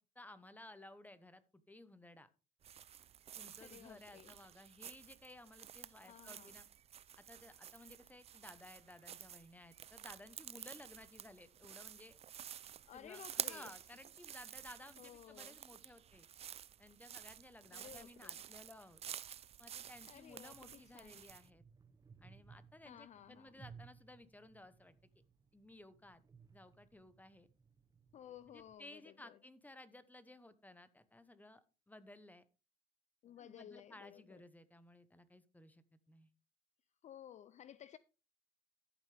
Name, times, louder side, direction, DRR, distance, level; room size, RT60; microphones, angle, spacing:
voice 1, 0.1-1.4 1.7-2.3 3.4-6.7 7.2-12.2 12.9-16.3 16.8-19.0 19.6-21.6 22.2-24.9 25.5-26.2 26.5-27.5 28.5-32.4 33.4-36.3, left 1 dB, 10° left, 0.9 m, -57 dB
sound 1, 2.6-21.5, right 9 dB, 35° right, 0.4 m, -50 dB
voice 2, 3.5-4.4 5.9-6.5 12.9-13.8 15.0-15.6 17.7-18.4 20.0-21.2 22.8-23.5 28.1-29.4 33.2-34.4 37.0-38.0, left 10 dB, 45° left, 0.4 m, -56 dB
sound 2, 19.8-28.7, right 5 dB, 20° right, 0.8 m, -62 dB
13.5 x 7.3 x 3.4 m
cardioid pair, 110°, 17 cm